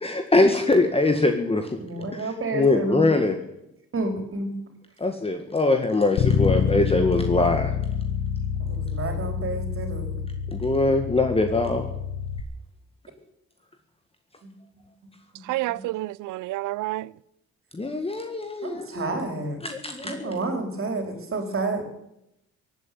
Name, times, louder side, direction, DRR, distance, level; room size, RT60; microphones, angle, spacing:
voice 1, 0.0-1.8 2.1-3.4 5.0-7.7 10.5-11.9 17.7-19.2 19.6-20.4, left 2 dB, 20° left, 1.6 m, -23 dB
voice 2, 1.8-3.1 3.9-4.5 8.6-10.2 15.3-15.8 18.6-19.6 20.0-21.8, right 2 dB, 45° right, 4.1 m, -30 dB
Bass guitar, 6.2-12.4, left 8 dB, 70° left, 1.5 m, -27 dB
voice 3, 15.5-17.1, right 17 dB, 80° right, 0.5 m, -29 dB
16.5 x 9.0 x 9.3 m
cardioid pair, 90°, 30 cm